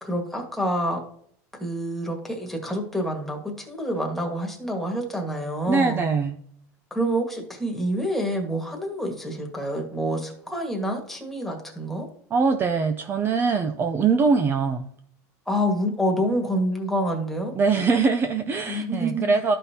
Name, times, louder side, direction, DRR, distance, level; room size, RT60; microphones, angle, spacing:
voice 1, 0.0-1.0 1.6-6.0 6.9-12.1 15.5-17.5 18.7-19.3, equal, 5° left, 1 dB, 1.7 m, -27 dB
voice 2, 5.7-6.4 12.3-14.9 17.6-19.6, right 4 dB, 25° right, 8 dB, 0.5 m, -22 dB
12.5 x 5.5 x 2.8 m, 0.64 s
supercardioid pair, 130°, 8 cm